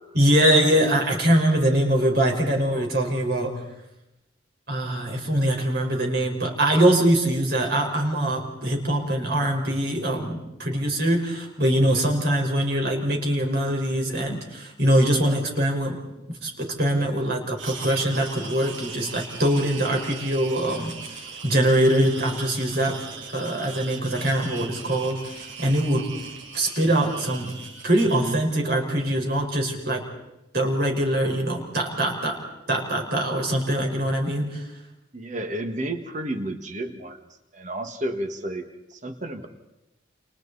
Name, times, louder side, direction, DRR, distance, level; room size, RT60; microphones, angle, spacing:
voice 1, 0.1-3.6 4.7-16.0 16.3-23.1 23.3-26.2 26.5-27.6 27.8-30.0 30.5-32.4 32.7-34.7, right 1 dB, 55° right, 1 dB, 5.1 m, -23 dB
sound 1, 17.6-28.4, right 4 dB, 85° right, 3.1 m, -39 dB
voice 2, 35.1-37.2 37.5-39.5, right 1 dB, 40° right, 6 dB, 1.9 m, -32 dB
30.0 x 29.0 x 4.2 m, 0.93 s
head